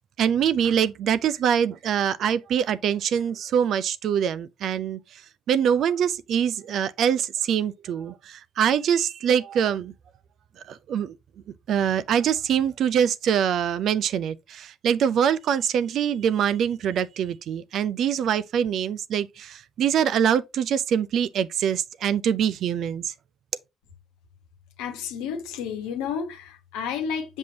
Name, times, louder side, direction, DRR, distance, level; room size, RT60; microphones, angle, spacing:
voice 1, 0.2-5.0 5.5-9.9 10.7-11.1 11.7-23.1, right 8 dB, 55° right, 0.4 m, -24 dB
voice 2, 24.8-27.4, left 7 dB, 70° left, 1.1 m, -31 dB
7.5 x 5.4 x 2.8 m
figure-of-eight pair, 40°, 0 cm